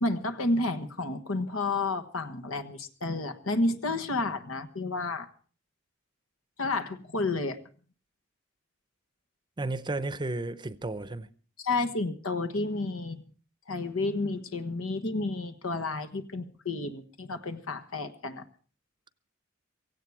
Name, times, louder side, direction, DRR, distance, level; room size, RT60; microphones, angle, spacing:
voice 1, 0.0-5.3 6.6-7.6 11.6-13.2 13.7-18.4, left 2 dB, 90° left, 1.4 m, -31 dB
voice 2, 9.6-11.3, right 2 dB, 20° right, 0.7 m, -33 dB
17.0 x 16.0 x 4.8 m
head